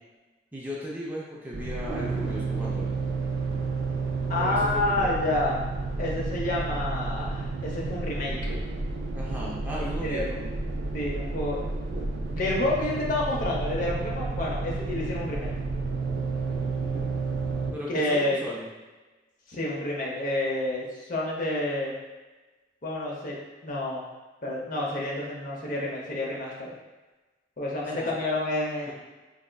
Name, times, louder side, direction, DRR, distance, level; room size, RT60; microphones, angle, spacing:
voice 1, 0.5-2.9 4.4-5.3 9.1-10.4 16.6-17.2 17.7-18.7 27.9-28.2 28.9-29.0, equal, 10° right, -5 dB, 0.5 m, -36 dB
sound 1, 1.5-17.7, right 3 dB, 90° right, 0.5 m, -31 dB
voice 2, 4.3-5.6 6.0-8.4 9.8-10.4 10.9-11.7 12.3-15.5 17.9-18.4 19.5-21.9 22.8-23.4 23.6-24.0 24.4-26.7 27.6-28.9, left 1 dB, 50° left, -3 dB, 0.7 m, -29 dB
4.1 x 2.4 x 2.2 m, 1.2 s
head